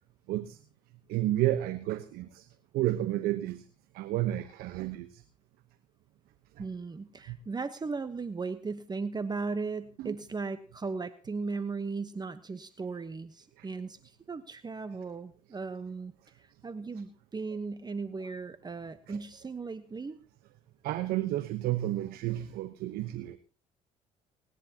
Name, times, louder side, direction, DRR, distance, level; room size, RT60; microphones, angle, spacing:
voice 1, 0.3-0.6 1.1-2.5 2.7-3.7 3.9-5.2 6.5-6.6 7.3-7.4 10.0-10.1 13.6-13.7 19.1-19.2 20.8-23.4, right 14 dB, 70° right, 11 dB, 1.0 m, -31 dB
voice 2, 6.6-20.2, right 4 dB, 25° right, 11 dB, 1.1 m, -37 dB
29.0 x 10.5 x 2.9 m, 0.36 s
hypercardioid pair, 65°, 16 cm